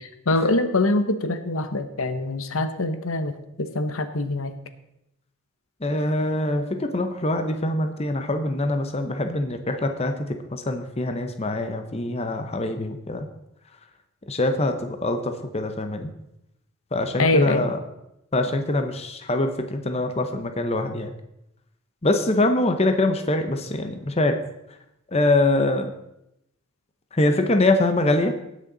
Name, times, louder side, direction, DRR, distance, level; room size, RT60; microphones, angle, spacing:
voice 1, 0.3-4.5 17.2-17.7, left 2 dB, 75° left, 9 dB, 1.0 m, -24 dB
voice 2, 5.8-13.3 14.3-16.1 16.9-17.8 18.3-21.1 22.0-24.4 25.1-25.9 27.1-28.3, left 2 dB, 30° left, 7 dB, 0.8 m, -24 dB
18.5 x 6.5 x 3.9 m, 0.84 s
head